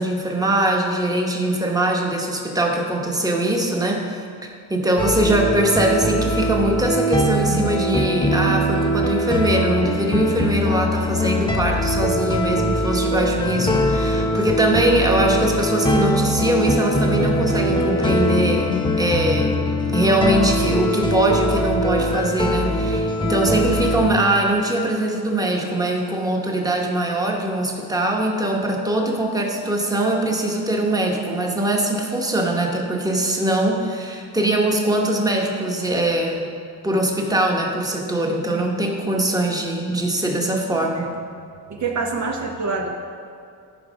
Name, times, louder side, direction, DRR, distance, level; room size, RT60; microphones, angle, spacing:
voice 1, 0.0-18.7 19.0-19.6 19.9-36.5 36.8-41.1, right 1 dB, 10° right, 0 dB, 1.1 m, -22 dB
sound 1, 5.0-24.1, equal, 10° left, 0.7 m, -22 dB
sound 2, 7.5-9.0 9.5-21.7, left 4 dB, 50° left, 0.7 m, -32 dB
voice 2, 38.5-38.9 40.7-41.1 41.7-43.0, right 4 dB, 45° right, 1 dB, 0.7 m, -27 dB
11.5 x 4.7 x 5.1 m, 2.4 s
cardioid pair, 115°, 39 cm